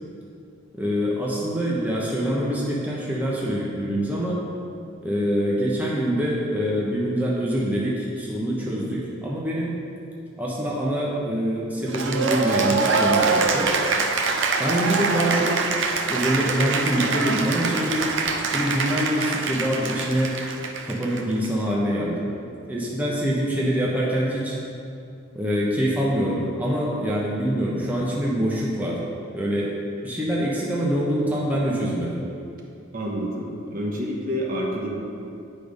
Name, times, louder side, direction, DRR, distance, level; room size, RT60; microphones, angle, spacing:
voice 1, 0.7-4.4 5.0-9.7 10.4-13.7 14.6-15.6 16.1-18.1 18.5-20.4 20.8-22.3 22.7-24.6 25.3-29.0 29.3-29.7 30.0-32.2, equal, 10° right, -5 dB, 0.9 m, -25 dB
Cheering / Applause, 11.9-21.5, right 4 dB, 65° right, 0.6 m, -24 dB
voice 2, 32.9-34.9, equal, 45° right, -2 dB, 1.2 m, -28 dB
8.5 x 5.3 x 5.2 m, 2.6 s
head